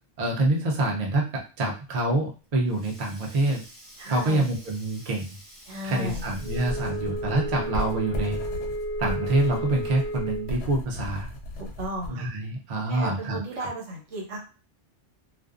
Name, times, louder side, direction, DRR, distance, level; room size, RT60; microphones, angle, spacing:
voice 1, 0.2-3.6 4.1-5.3 5.8-8.4 9.0-11.3 12.1-13.7, right 2 dB, 45° right, -1 dB, 0.5 m, -26 dB
Sink (filling or washing), 2.3-7.2, equal, 10° right, 1.1 m, -50 dB
voice 2, 4.0-4.5 5.7-6.2 11.6-12.3 12.9-14.4, right 1 dB, 70° right, -1 dB, 1.1 m, -34 dB
sound 1, 6.0-12.1, left 1 dB, 60° left, 0.7 m, -35 dB
Wind instrument woodwind instrument, 6.4-10.6, right 1 dB, 20° left, 0.5 m, -33 dB
2.5 x 2.1 x 2.4 m, 0.34 s
omnidirectional pair, 1.3 m